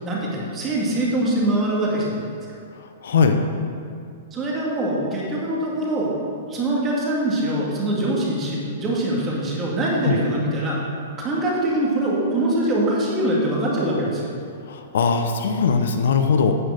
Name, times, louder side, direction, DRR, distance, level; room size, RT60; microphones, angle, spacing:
voice 1, 0.0-2.2 4.3-10.8 11.2-14.2, right 1 dB, 20° right, -4 dB, 2.1 m, -23 dB
voice 2, 3.0-3.4 10.0-10.2 14.7-16.6, left 5 dB, 75° left, 6 dB, 0.8 m, -20 dB
9.9 x 5.0 x 6.4 m, 2.3 s
hypercardioid pair, 150°, 0 cm